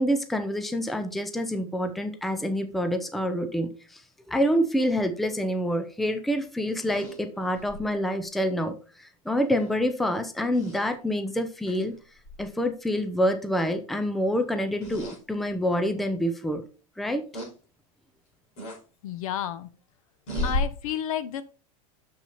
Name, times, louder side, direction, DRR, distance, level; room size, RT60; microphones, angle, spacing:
voice 1, 0.0-4.0 4.3-12.0 12.4-16.6 17.0-17.3, equal, ahead, 7 dB, 0.5 m, -27 dB
sound 1, 6.8-7.9 9.5-9.7 10.5-10.8 11.6-11.9 12.2-12.4 14.8-15.2 15.8-15.9 17.3-17.5 18.6-18.8 20.3-20.6, left 1 dB, 40° left, 5.0 m, -33 dB
voice 2, 19.0-19.7 20.4-21.4, left 10 dB, 70° left, 13 dB, 1.0 m, -31 dB
7.1 x 6.1 x 4.2 m, 0.35 s
supercardioid pair, 170°, 18 cm